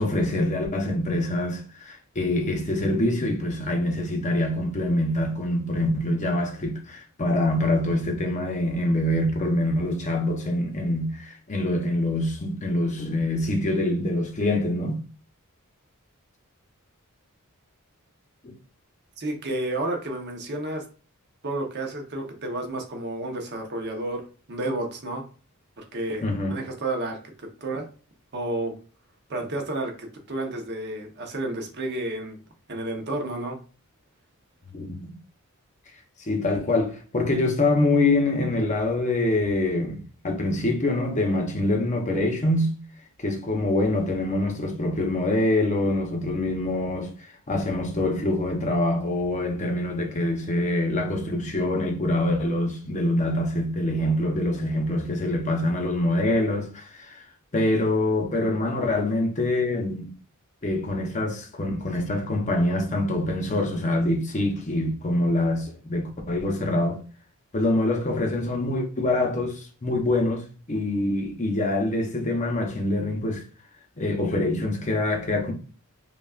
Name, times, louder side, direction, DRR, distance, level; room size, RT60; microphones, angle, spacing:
voice 1, 0.0-15.0 18.4-18.5 26.2-26.5 34.7-35.1 36.2-42.8 43.2-57.2 57.5-60.1 60.6-67.0 67.5-73.4 74.0-75.5, left 1 dB, 35° left, 0.7 m, -25 dB
voice 2, 19.2-20.9 21.4-25.2 25.8-27.9 28.3-28.7 29.3-32.4 32.7-33.6, right 2 dB, 50° right, 0.9 m, -31 dB
5.4 x 2.4 x 2.4 m
head